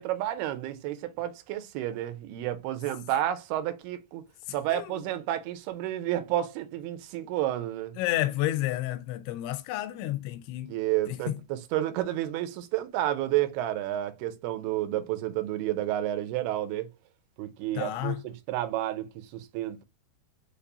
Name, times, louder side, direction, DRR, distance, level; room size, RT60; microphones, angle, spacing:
voice 1, 0.0-4.2 4.5-8.0 10.7-16.9 17.4-19.8, right 13 dB, 80° right, 2.6 m, -31 dB
voice 2, 4.7-5.1 8.0-10.7 11.1-11.3 17.8-18.2, left 14 dB, 85° left, 2.6 m, -30 dB
6.6 x 2.5 x 2.7 m
omnidirectional pair, 4.7 m